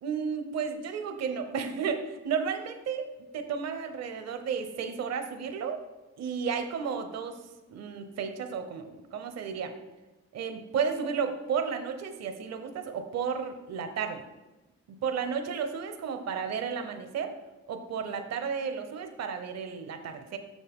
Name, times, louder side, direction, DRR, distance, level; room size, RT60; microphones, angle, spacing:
voice 1, 0.0-3.1 3.3-5.8 6.2-7.4 7.7-9.7 10.3-14.2 14.9-17.3 17.7-20.4, right 6 dB, 60° right, 7 dB, 0.8 m, -33 dB
7.3 x 6.3 x 3.6 m, 1.1 s
cardioid pair, 90°, 30 cm